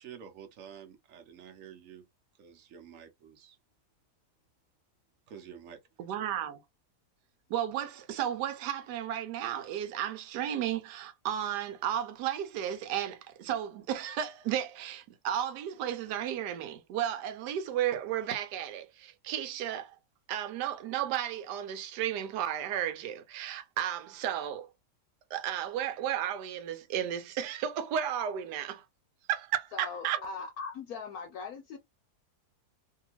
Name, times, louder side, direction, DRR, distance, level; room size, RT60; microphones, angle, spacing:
voice 1, 0.0-2.1 2.4-3.6 5.3-5.8, right 8 dB, 60° right, 1.0 m, -49 dB
voice 2, 6.0-6.6 7.5-19.9 20.3-24.7 25.3-28.8 29.3-30.2, right 10 dB, 85° right, 1.2 m, -33 dB
voice 3, 29.7-31.8, left 5 dB, 70° left, 1.0 m, -40 dB
2.7 x 2.7 x 2.9 m
omnidirectional pair, 1.8 m